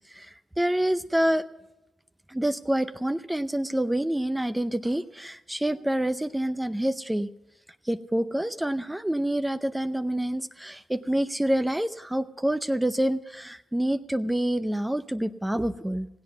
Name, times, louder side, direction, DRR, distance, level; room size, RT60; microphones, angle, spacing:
voice 1, 0.1-1.5 2.3-7.3 7.8-16.1, right 1 dB, 10° right, 10 dB, 0.6 m, -27 dB
16.5 x 8.7 x 7.1 m, 0.95 s
cardioid pair, 60°, 0 cm